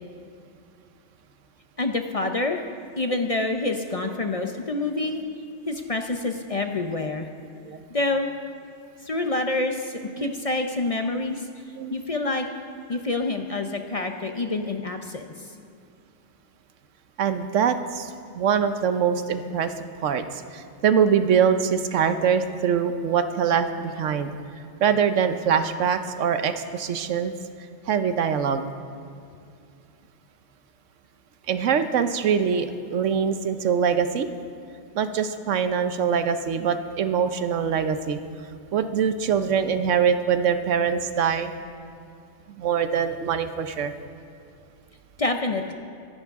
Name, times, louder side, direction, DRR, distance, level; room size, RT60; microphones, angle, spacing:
voice 1, 1.8-2.6 3.0-5.2 5.7-7.3 7.9-8.3 9.0-11.5 11.9-12.5 12.9-15.2 45.2-45.7, left 2 dB, 40° left, 5 dB, 0.6 m, -27 dB
voice 2, 17.2-18.1 18.4-19.7 20.0-20.2 20.8-24.3 24.8-27.3 27.9-28.6 31.5-34.3 35.0-38.2 38.7-41.5 42.6-43.9, right 7 dB, 90° right, 9 dB, 1.1 m, -23 dB
22.5 x 10.5 x 3.6 m, 2.5 s
omnidirectional pair, 1.2 m